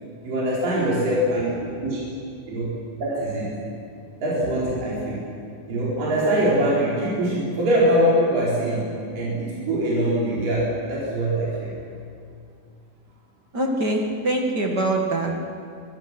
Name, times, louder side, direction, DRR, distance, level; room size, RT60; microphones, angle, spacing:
voice 1, 0.2-2.0 2.5-2.7 3.0-3.5 4.2-5.2 5.7-8.9 9.1-11.7, right 1 dB, 60° right, -7 dB, 6.2 m, -23 dB
voice 2, 13.5-15.4, right 2 dB, 40° right, 1 dB, 1.5 m, -23 dB
26.0 x 23.0 x 6.2 m, 2.4 s
omnidirectional pair, 4.4 m